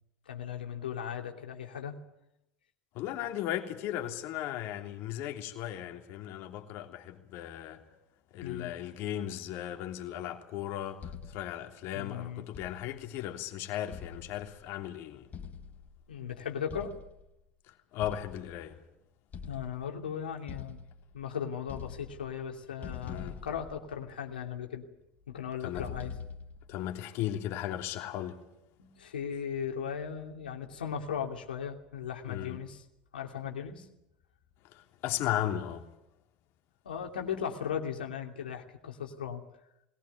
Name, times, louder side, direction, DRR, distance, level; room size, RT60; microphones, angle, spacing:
voice 1, 0.3-2.0 8.4-8.7 11.9-12.5 16.1-16.9 19.5-20.8 21.1-24.8 25.3-26.1 28.8-32.8 33.1-33.9 36.8-39.4, left 8 dB, 90° left, 2.9 m, -37 dB
voice 2, 2.9-7.8 8.3-15.3 17.7-18.8 23.1-23.4 25.6-25.9 26.7-28.4 32.3-32.6 34.6-35.9, left 12 dB, 60° left, 3.2 m, -36 dB
sound 1, 11.0-11.6 12.5-13.1 13.9-14.7 15.3-16.1 16.7-17.3 18.0-18.8 19.3-20.0 20.5-21.3 21.6-22.5 22.8-24.3 25.8-26.7, left 6 dB, 35° left, 3.6 m, -45 dB
21.0 x 19.0 x 9.5 m
hypercardioid pair, 80°, 5 cm